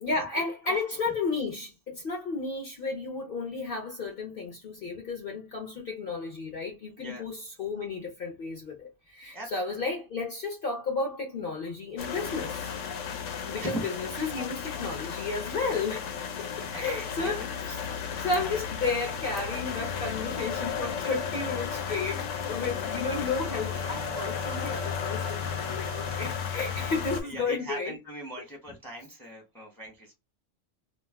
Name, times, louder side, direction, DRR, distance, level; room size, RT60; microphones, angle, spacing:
voice 1, 0.0-12.8 13.5-16.1 16.4-17.8 18.2-27.9, left 4 dB, 50° left, 0.8 m, -33 dB
sound 1, 12.0-27.2, left 7 dB, 75° left, 1.0 m, -34 dB
voice 2, 16.5-17.5 17.9-18.3 27.2-30.2, right 1 dB, ahead, 0.6 m, -40 dB
Wind instrument woodwind instrument, 23.0-26.6, right 5 dB, 90° right, 1.0 m, -44 dB
2.4 x 2.1 x 3.3 m
omnidirectional pair, 1.3 m